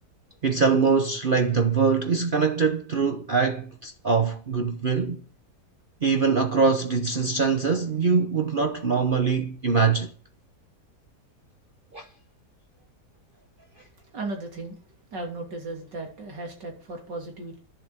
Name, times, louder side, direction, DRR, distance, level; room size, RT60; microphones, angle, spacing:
voice 1, 0.4-5.2 6.0-10.1 11.9-12.0, right 5 dB, 45° right, 0.7 m, -23 dB
voice 2, 14.1-14.8 15.1-17.6, right 2 dB, 90° right, 3.7 m, -35 dB
11.0 x 7.1 x 8.1 m
omnidirectional pair, 1.8 m